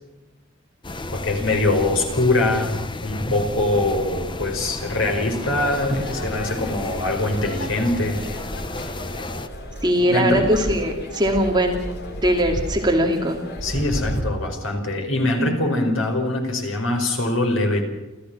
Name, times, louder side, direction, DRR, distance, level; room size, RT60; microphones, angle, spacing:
sound 1, 0.8-9.5, left 2 dB, 25° left, 1.0 m, -32 dB
voice 1, 1.1-2.8 3.0-8.2 10.0-10.5 13.6-17.8, left 2 dB, 75° left, 4 dB, 5.1 m, -23 dB
sound 2, 5.5-14.2, equal, 55° left, 3.9 m, -33 dB
voice 2, 9.8-11.8 12.2-13.4, equal, 20° right, 2 dB, 2.7 m, -20 dB
29.5 x 14.0 x 6.3 m, 1.1 s
head